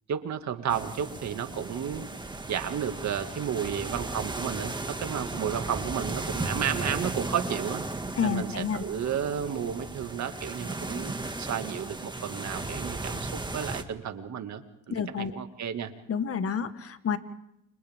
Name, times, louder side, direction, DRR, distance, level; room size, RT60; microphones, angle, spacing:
voice 1, 0.1-2.1 2.5-7.8 8.2-11.1 11.4-15.9, right 8 dB, 65° right, 7 dB, 2.2 m, -32 dB
sound 1, 0.7-13.8, right 2 dB, 15° right, 2.0 m, -35 dB
voice 2, 8.2-8.8 14.9-15.3 16.1-17.2, left 7 dB, 50° left, 10 dB, 1.7 m, -29 dB
30.0 x 27.0 x 3.7 m, 0.81 s
cardioid pair, 90°, 30 cm